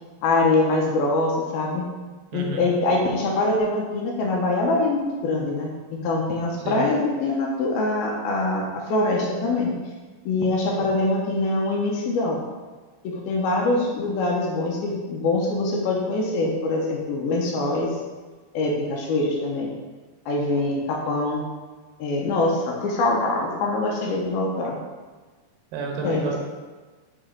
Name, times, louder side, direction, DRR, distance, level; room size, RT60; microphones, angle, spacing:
voice 1, 0.2-1.8 2.3-5.7 6.0-9.7 10.3-12.4 13.0-17.9 18.5-19.7 20.3-21.4 22.0-24.8 26.0-26.3, left 2 dB, 75° left, -1 dB, 2.5 m, -24 dB
voice 2, 2.3-2.7 6.6-6.9 25.7-26.4, right 4 dB, 75° right, 1 dB, 2.6 m, -30 dB
6.3 x 4.4 x 4.5 m, 1.3 s
omnidirectional pair, 4.7 m